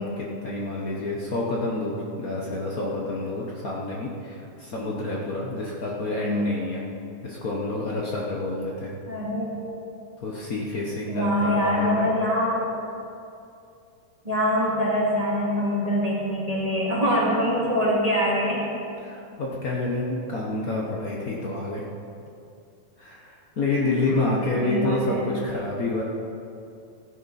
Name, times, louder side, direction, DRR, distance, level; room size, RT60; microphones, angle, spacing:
voice 1, 0.0-6.8 7.2-8.9 10.2-11.9 19.0-21.8 23.0-26.0, left 2 dB, 90° left, -3 dB, 0.7 m, -28 dB
voice 2, 6.2-6.6 9.1-9.5 11.1-12.7 14.2-18.7 24.6-25.3, equal, 15° right, -7 dB, 2.4 m, -24 dB
15.5 x 10.5 x 4.3 m, 2.6 s
omnidirectional pair, 3.5 m